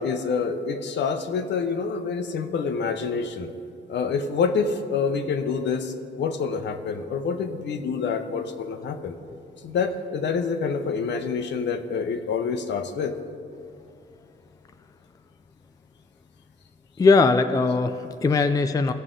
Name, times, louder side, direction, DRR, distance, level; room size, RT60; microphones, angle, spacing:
voice 1, 0.0-3.5 3.9-9.2 9.6-13.1, left 5 dB, 60° left, 7 dB, 0.8 m, -27 dB
voice 2, 17.0-18.9, left 4 dB, 20° left, 9 dB, 0.4 m, -20 dB
15.0 x 6.5 x 3.7 m, 2.7 s
cardioid pair, 90°, 20 cm